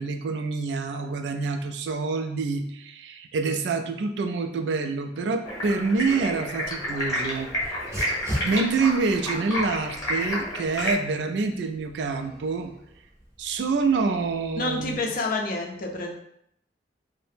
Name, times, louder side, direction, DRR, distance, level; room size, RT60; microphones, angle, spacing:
voice 1, 0.0-7.8 8.4-12.7 13.4-15.0, right 4 dB, 70° right, 7 dB, 0.3 m, -27 dB
Stream, 5.4-10.9, equal, 20° left, 0.9 m, -30 dB
Dog, 5.9-15.0, equal, 15° right, 0.6 m, -41 dB
voice 2, 14.6-16.1, left 2 dB, 55° left, 1 dB, 0.5 m, -28 dB
2.7 x 2.0 x 3.3 m, 0.74 s
head